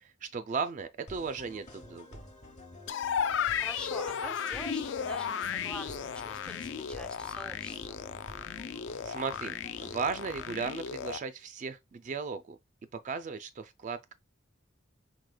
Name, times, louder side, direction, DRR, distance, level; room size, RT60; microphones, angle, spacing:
voice 1, 0.0-2.1 9.0-12.6 13.0-14.1, right 5 dB, 40° right, 0.3 m, -36 dB
sound 1, 1.1-10.7, left 1 dB, 35° left, 1.0 m, -50 dB
sound 2, 2.9-11.2, left 7 dB, 65° left, 0.3 m, -35 dB
voice 2, 3.2-8.0, equal, 5° left, 0.6 m, -45 dB
4.9 x 3.9 x 2.2 m
head